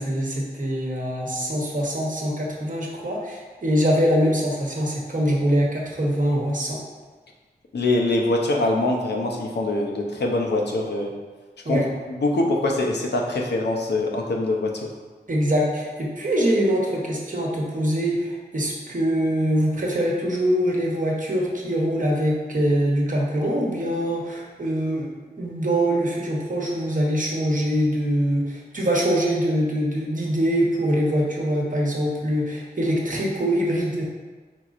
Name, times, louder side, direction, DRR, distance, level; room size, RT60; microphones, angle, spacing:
voice 1, 0.0-6.8 11.6-11.9 15.3-25.1 25.4-34.0, equal, 50° right, -2 dB, 1.0 m, -23 dB
voice 2, 7.7-11.1 11.7-11.8 12.2-14.9, left 2 dB, 85° left, 1 dB, 0.6 m, -23 dB
4.5 x 4.0 x 2.4 m, 1.4 s
wide cardioid pair, 60°, 17 cm